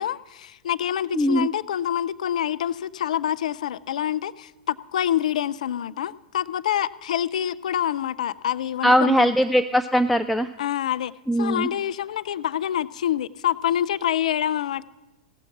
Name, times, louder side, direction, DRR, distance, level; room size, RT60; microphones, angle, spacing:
voice 1, 0.0-9.3 10.6-11.1 11.4-14.8, left 10 dB, 75° left, 18 dB, 0.4 m, -26 dB
voice 2, 1.1-1.5 8.8-10.5 11.3-11.7, equal, ahead, 7 dB, 0.4 m, -20 dB
16.0 x 7.0 x 6.0 m, 1.1 s
hypercardioid pair, 100°, 4 cm